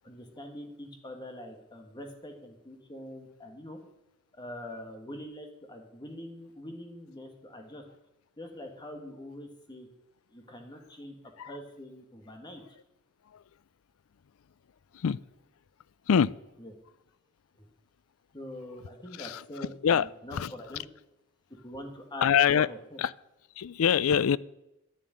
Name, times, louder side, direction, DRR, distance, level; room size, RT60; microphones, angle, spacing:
voice 1, 0.0-3.8 4.4-7.8 8.4-9.9 10.3-11.1 11.5-12.6 16.6-16.7 18.3-20.8 21.6-22.3 22.5-22.8, left 1 dB, 20° left, 4 dB, 1.5 m, -44 dB
voice 2, 19.1-20.5 22.2-22.7 23.0-23.1 23.6-24.4, left 8 dB, 65° left, 21 dB, 0.4 m, -25 dB
10.5 x 7.4 x 9.7 m, 0.92 s
head